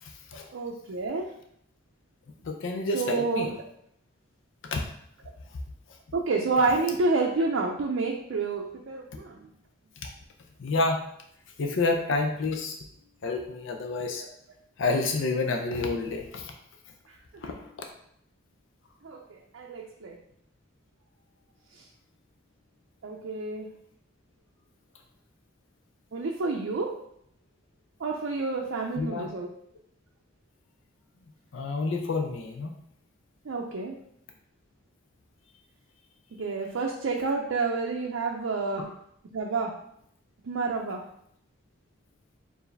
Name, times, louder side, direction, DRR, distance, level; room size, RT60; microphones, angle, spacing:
voice 1, 0.0-0.5 2.4-3.5 4.6-4.8 10.0-10.1 10.6-11.0 11.6-12.8 13.2-14.2 14.8-16.5 17.4-17.8 29.0-29.3 31.5-32.7, left 3 dB, 70° left, 3 dB, 0.5 m, -29 dB
voice 2, 0.5-1.3 2.9-3.5 6.1-9.5 14.2-14.3 17.1-17.2 19.0-20.2 21.7-21.9 23.0-23.7 26.1-26.9 28.0-29.5 33.5-33.9 36.3-38.9 39.3-39.7 40.4-41.0, right 3 dB, 85° right, 0 dB, 0.5 m, -29 dB
4.5 x 2.6 x 3.3 m, 0.71 s
head